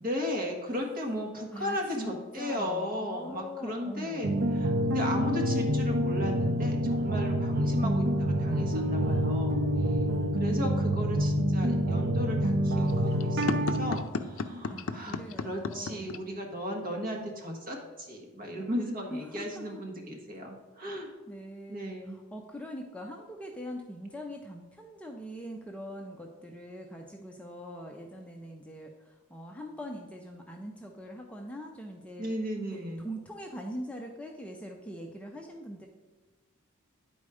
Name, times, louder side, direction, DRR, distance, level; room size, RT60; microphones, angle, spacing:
voice 1, 0.0-4.3 4.5-9.5 9.9-10.0 10.4-21.1 21.7-22.2 32.2-33.1, equal, 40° right, 1 dB, 1.4 m, -35 dB
voice 2, 1.5-4.4 9.0-9.3 10.0-10.4 14.7-16.1 19.1-19.8 21.3-32.3 32.7-35.9, equal, 5° left, 1 dB, 0.5 m, -42 dB
sound 1, 4.2-14.0, equal, 55° right, 0.5 m, -27 dB
sound 2, 12.8-16.2, left 4 dB, 65° left, 0.5 m, -33 dB
9.8 x 4.2 x 4.8 m, 1.3 s
head